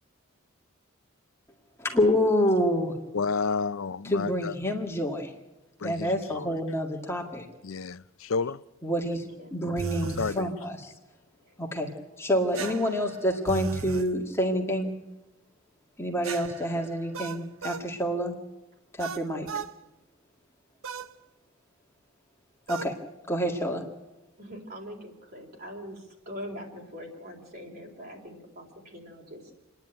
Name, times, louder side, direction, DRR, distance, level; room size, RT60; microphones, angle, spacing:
voice 1, 1.8-2.9 4.0-5.3 5.8-7.5 8.8-10.9 11.6-11.9 12.2-14.9 16.0-18.3 19.0-19.5 22.7-22.9 23.3-23.8, equal, 15° left, 2.0 m, -27 dB
voice 2, 3.1-4.5 5.8-6.5 7.6-8.6 10.0-10.6, left 4 dB, 75° left, 0.6 m, -31 dB
sound 1, 9.8-10.4 12.5-14.1 16.2-17.9 19.0-19.7 20.8-21.1 22.7-23.0, right 5 dB, 85° right, 0.8 m, -36 dB
voice 3, 12.6-13.0 24.4-29.4, equal, 50° right, 4.1 m, -42 dB
27.5 x 10.5 x 9.1 m
head